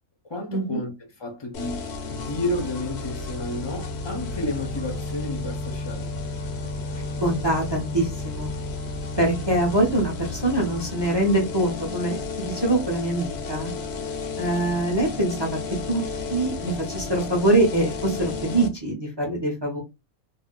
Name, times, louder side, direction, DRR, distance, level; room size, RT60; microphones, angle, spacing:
voice 1, 0.2-6.3, left 1 dB, 30° left, 0.5 m, -31 dB
sound 1, 1.5-18.7, left 3 dB, 60° left, 0.8 m, -32 dB
voice 2, 7.0-8.5 9.2-13.7 14.4-15.6 15.9-16.0 16.3-19.8, right 1 dB, 25° right, 0.6 m, -24 dB
2.5 x 2.1 x 3.7 m
omnidirectional pair, 1.3 m